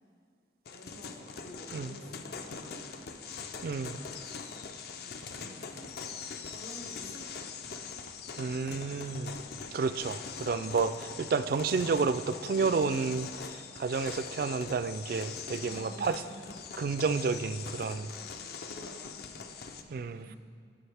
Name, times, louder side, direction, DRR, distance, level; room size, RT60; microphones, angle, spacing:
voice 1, 0.7-3.1 4.9-7.8 15.6-16.6 17.9-20.4, equal, 80° left, -1 dB, 1.2 m, -51 dB
sound 1, 0.7-19.8, left 5 dB, 55° left, 0.5 m, -42 dB
voice 2, 3.6-4.0 8.4-9.4 9.7-16.2 16.8-18.1 19.9-20.3, right 4 dB, 55° right, 12 dB, 0.3 m, -31 dB
11.0 x 6.4 x 3.4 m, 2.2 s
head